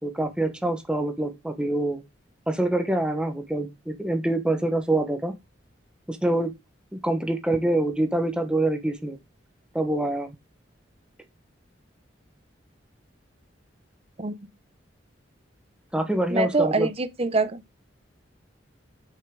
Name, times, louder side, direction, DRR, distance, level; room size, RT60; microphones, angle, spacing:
voice 1, 0.0-2.0 2.5-5.3 6.1-6.5 6.9-9.2 9.7-10.3 15.9-16.9, right 1 dB, 5° right, 1.1 m, -25 dB
voice 2, 16.3-17.6, right 3 dB, 35° right, 0.8 m, -24 dB
6.5 x 5.6 x 4.9 m
head